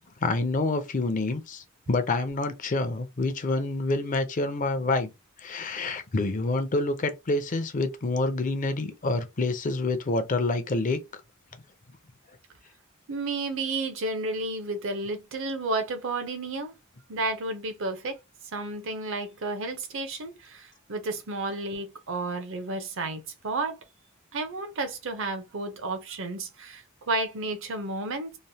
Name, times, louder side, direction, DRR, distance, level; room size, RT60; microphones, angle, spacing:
voice 1, 0.2-5.1 5.4-11.0, left 2 dB, 40° left, 0.5 m, -27 dB
voice 2, 13.1-16.7 17.1-18.2 18.5-23.8 24.3-28.4, right 2 dB, 65° right, 0.7 m, -32 dB
3.1 x 2.1 x 2.7 m
head